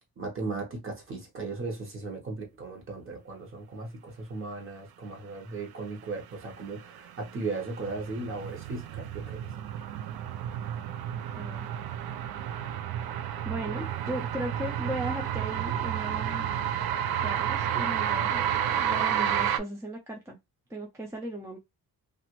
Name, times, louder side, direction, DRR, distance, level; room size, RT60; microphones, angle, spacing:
voice 1, 0.2-9.5, right 3 dB, 35° right, 1.0 m, -37 dB
sound 1, 6.8-19.6, right 9 dB, 80° right, 0.5 m, -31 dB
voice 2, 11.1-11.7 13.4-16.5 17.2-20.4 20.7-21.6, right 1 dB, 10° right, 0.3 m, -37 dB
2.9 x 2.5 x 2.9 m
wide cardioid pair, 170°, 37 cm